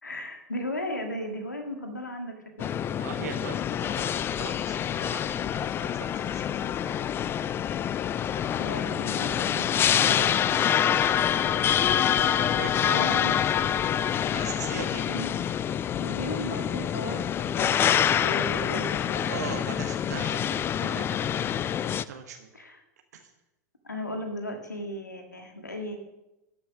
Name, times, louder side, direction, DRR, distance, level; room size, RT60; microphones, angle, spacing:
voice 1, 0.0-2.8 8.6-10.6 12.9-13.3 14.9-15.3 16.0-19.4 22.5-22.8 23.8-26.0, left 1 dB, 90° left, 4 dB, 1.7 m, -36 dB
sound 1, 2.6-22.0, left 9 dB, 25° left, 0.4 m, -26 dB
voice 2, 2.9-6.7 11.2-11.3 12.3-13.4 14.2-15.1 19.3-21.2 22.1-22.5 23.1-23.3, right 7 dB, 70° right, 5 dB, 1.2 m, -40 dB
12.0 x 6.0 x 6.2 m, 0.94 s
figure-of-eight pair, 90°, 9 cm